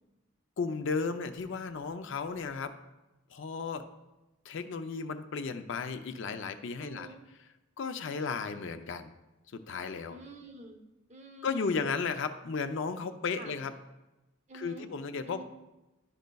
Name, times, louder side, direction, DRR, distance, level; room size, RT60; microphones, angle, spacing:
voice 1, 0.6-2.7 3.3-3.9 4.4-7.1 7.8-9.1 9.5-10.2 11.4-13.7 14.5-15.4, left 5 dB, 55° left, 8 dB, 0.4 m, -34 dB
voice 2, 6.8-7.2 10.1-10.8 11.1-11.9 13.4-13.5 14.5-14.9 15.2-15.4, right 2 dB, 30° right, 4 dB, 0.7 m, -48 dB
11.0 x 5.1 x 2.2 m, 1.0 s
head